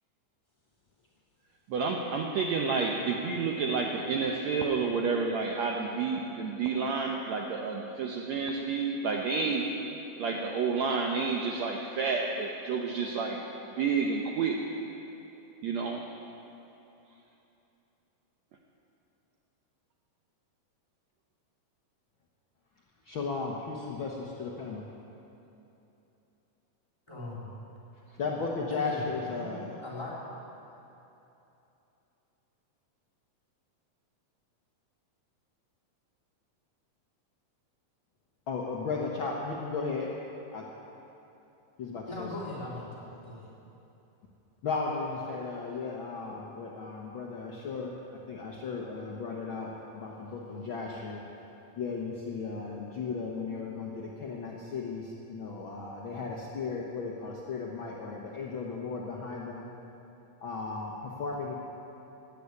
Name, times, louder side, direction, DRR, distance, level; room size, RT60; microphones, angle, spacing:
voice 1, 1.7-9.7 10.2-13.4 13.8-14.6 15.6-16.0, right 5 dB, 70° right, 1 dB, 1.7 m, -30 dB
voice 2, 23.0-24.8 28.2-29.8 38.5-40.1 40.5-40.6 41.8-42.3 44.6-48.0 48.3-51.2 51.8-59.7 60.4-61.5, left 4 dB, 75° left, -2 dB, 1.1 m, -35 dB
voice 3, 27.1-27.4 28.7-29.0 29.3-30.1 42.1-43.5, left 2 dB, 10° left, -8 dB, 3.4 m, -40 dB
16.5 x 8.4 x 9.6 m, 3.0 s
omnidirectional pair, 4.0 m